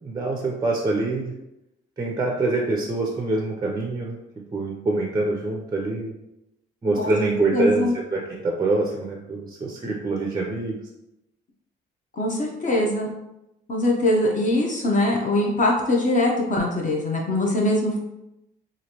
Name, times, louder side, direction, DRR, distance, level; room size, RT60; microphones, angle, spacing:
voice 1, 0.0-1.3 2.0-4.2 4.5-6.1 6.8-10.8, right 2 dB, 20° right, 1 dB, 0.4 m, -25 dB
voice 2, 7.5-7.9 12.1-13.1 13.7-18.0, left 1 dB, 40° left, -1 dB, 0.7 m, -22 dB
3.0 x 2.5 x 2.8 m, 0.88 s
cardioid pair, 90°, 20 cm